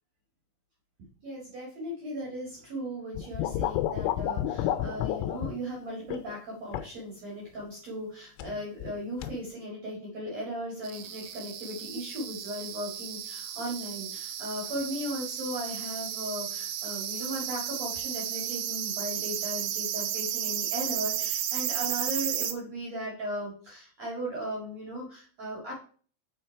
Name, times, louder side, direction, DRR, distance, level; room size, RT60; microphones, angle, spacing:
voice 1, 1.2-25.7, equal, 45° right, -3 dB, 2.4 m, -37 dB
sound 1, 3.2-5.6 6.1-6.4 6.7-7.0 8.4-8.9 9.2-9.4, left 12 dB, 85° left, 3.0 m, -30 dB
sound 2, 10.8-22.5, right 11 dB, 80° right, 3.1 m, -34 dB
6.4 x 5.6 x 4.6 m, 0.42 s
omnidirectional pair, 5.4 m